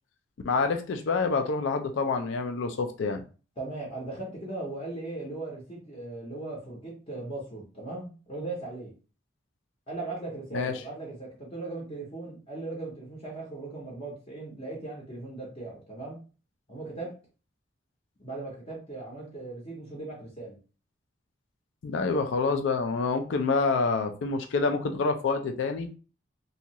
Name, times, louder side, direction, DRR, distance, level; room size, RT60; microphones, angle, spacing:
voice 1, 0.4-3.2 10.5-10.7 21.8-25.9, left 4 dB, 65° left, 0.4 m, -27 dB
voice 2, 3.6-8.9 9.9-16.2 16.7-17.1 18.2-20.6, right 2 dB, 30° left, 0.6 m, -38 dB
2.7 x 2.3 x 2.9 m
head